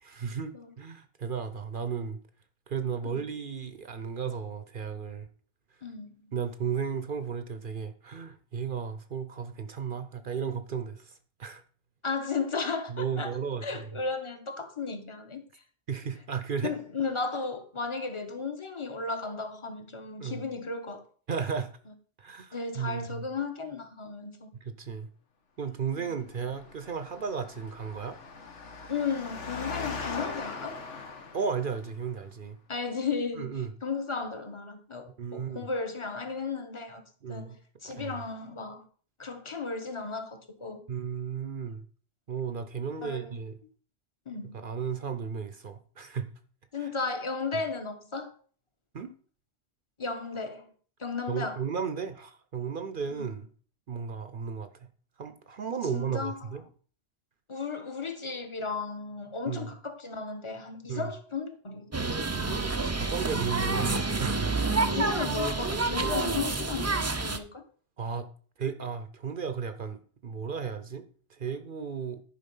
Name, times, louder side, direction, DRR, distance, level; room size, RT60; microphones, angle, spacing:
voice 1, 0.0-2.2 2.7-5.3 6.3-11.6 12.9-13.6 15.9-16.7 20.2-20.4 21.3-21.7 22.2-23.3 24.5-25.1 25.6-28.2 31.3-32.6 33.4-33.7 35.2-35.7 37.2-37.6 37.8-38.2 40.9-41.8 42.3-43.6 44.5-46.3 46.8-46.9 48.9-49.1 51.3-53.5 53.9-54.9 55.2-56.6 59.5-59.7 60.9-61.1 62.4-64.6 68.0-68.3 68.6-72.2, right 6 dB, 50° right, 0.8 m, -34 dB
voice 2, 5.8-6.2 12.0-13.4 13.6-15.6 16.6-21.0 22.5-24.5 26.1-26.2 28.9-30.8 32.7-37.0 37.3-38.9 39.2-40.8 43.0-43.4 44.3-44.6 46.7-48.3 50.0-50.7 51.0-51.6 53.1-53.3 55.9-56.5 57.5-61.9 64.9-67.6, left 4 dB, 25° left, 1.1 m, -35 dB
Engine, 26.3-31.9, left 4 dB, 80° left, 1.6 m, -40 dB
sound 1, 61.9-67.4, right 3 dB, 25° right, 0.3 m, -28 dB
10.5 x 5.1 x 5.4 m
omnidirectional pair, 1.2 m